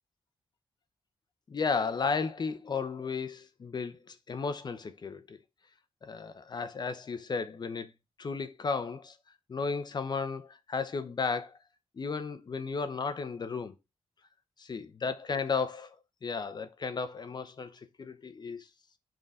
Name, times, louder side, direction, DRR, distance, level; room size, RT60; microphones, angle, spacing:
voice 1, 1.5-5.4 6.0-7.9 8.2-9.2 9.5-11.6 12.0-13.7 14.6-15.9 16.2-18.7, left 5 dB, 40° left, 0.8 m, -34 dB
4.5 x 3.9 x 5.4 m
wide cardioid pair, 115°, 11 cm